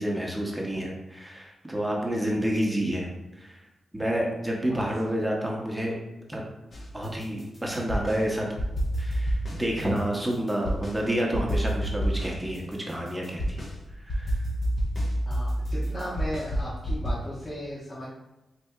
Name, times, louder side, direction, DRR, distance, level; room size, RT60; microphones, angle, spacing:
voice 1, 0.0-3.1 3.4-3.6 3.9-6.0 6.3-6.4 6.9-8.5 9.0-13.7 14.0-14.4, right 1 dB, 10° right, -1 dB, 0.8 m, -29 dB
voice 2, 4.7-5.1 15.2-18.1, equal, 30° left, -8 dB, 1.0 m, -36 dB
sound 1, 6.7-8.2 8.6-11.0 11.3-17.1, equal, 55° left, 0.9 m, -29 dB
4.4 x 2.6 x 2.3 m, 1.0 s
cardioid pair, 55°, 0 cm